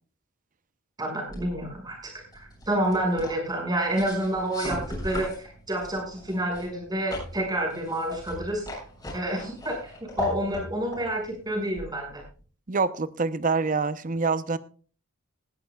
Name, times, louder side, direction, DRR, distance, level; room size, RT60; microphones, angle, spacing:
voice 1, 1.0-2.0 2.3-8.6 9.1-12.2, right 1 dB, 20° right, 6.1 m, -29 dB
sound 1, 1.3-12.4, left 1 dB, 20° left, 7.5 m, -39 dB
voice 2, 12.7-14.6, right 4 dB, 40° right, 0.7 m, -26 dB
19.5 x 13.0 x 2.3 m
head